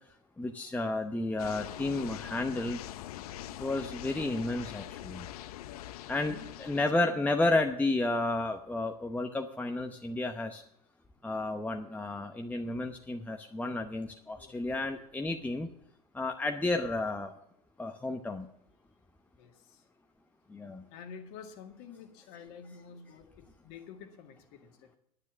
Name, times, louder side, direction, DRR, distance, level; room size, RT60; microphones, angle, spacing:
voice 1, 0.4-2.8 3.6-5.3 6.1-10.6 11.2-15.7 16.1-17.3 17.8-18.5 20.5-20.8, left 2 dB, 10° left, 4 dB, 0.9 m, -32 dB
sound 1, 1.4-6.9, left 13 dB, 75° left, 0.6 m, -43 dB
voice 2, 5.6-7.2 14.3-14.6 19.4-19.8 20.9-25.0, left 6 dB, 60° left, 6 dB, 2.1 m, -50 dB
9.8 x 9.7 x 6.2 m, 0.73 s
hypercardioid pair, 95°, 20 cm